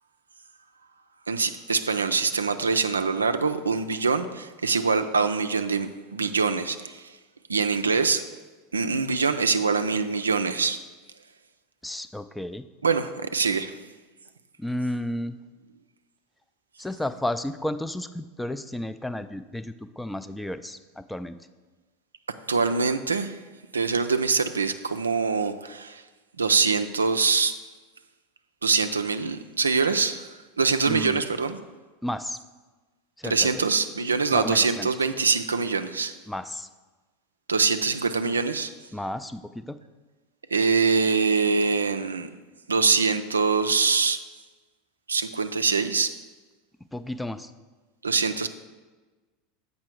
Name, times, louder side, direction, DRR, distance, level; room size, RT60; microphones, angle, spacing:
voice 1, 1.3-7.0 7.5-8.2 8.7-10.8 12.8-13.7 22.5-23.4 23.7-26.0 26.4-27.5 28.6-30.3 30.6-31.6 33.2-36.1 37.5-38.7 40.5-42.3 42.7-44.2 45.1-46.1 48.0-48.5, right 4 dB, 85° right, 9 dB, 0.3 m, -24 dB
voice 2, 11.8-12.7 14.6-15.4 16.8-21.4 30.9-31.2 32.0-32.4 33.2-33.6 34.3-34.9 36.3-36.7 38.9-39.8 46.9-47.5, left 1 dB, 5° left, 11 dB, 0.4 m, -32 dB
7.6 x 5.4 x 4.5 m, 1.3 s
figure-of-eight pair, 80°, 0 cm